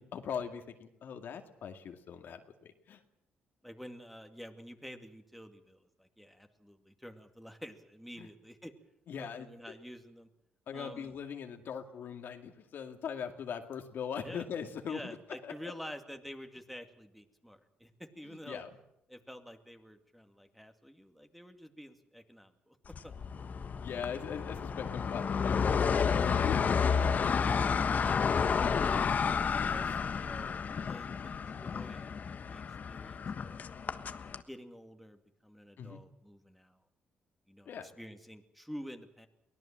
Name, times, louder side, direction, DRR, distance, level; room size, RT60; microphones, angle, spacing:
voice 1, 0.0-3.0 8.2-8.3 9.1-9.5 10.7-15.2 15.4-15.5 18.5-18.7 23.6-26.7 35.8-36.0 37.7-37.9, left 7 dB, 70° left, 5 dB, 2.2 m, -40 dB
voice 2, 3.6-8.7 9.2-10.3 10.7-11.2 14.2-14.5 14.9-18.6 19.1-22.8 23.0-23.1 28.0-30.6 30.9-33.6 34.5-36.8 37.5-39.3, equal, ahead, 6 dB, 2.3 m, -49 dB
sound 1, 22.9-34.4, left 6 dB, 50° left, 1.3 m, -31 dB
23.5 x 18.0 x 7.5 m, 0.80 s
cardioid pair, 85°, 4 cm